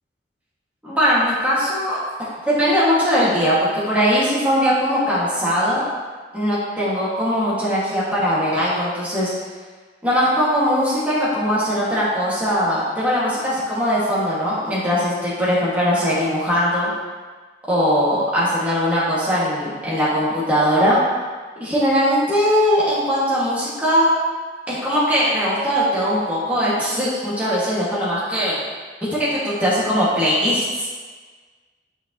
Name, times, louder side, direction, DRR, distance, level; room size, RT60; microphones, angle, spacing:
voice 1, 0.8-2.0 2.5-5.8 6.3-9.3 10.0-16.9 17.7-21.0 21.6-24.1 24.7-28.6 29.0-30.9, equal, 10° right, -9 dB, 2.0 m, -20 dB
7.6 x 6.3 x 3.1 m, 1.4 s
head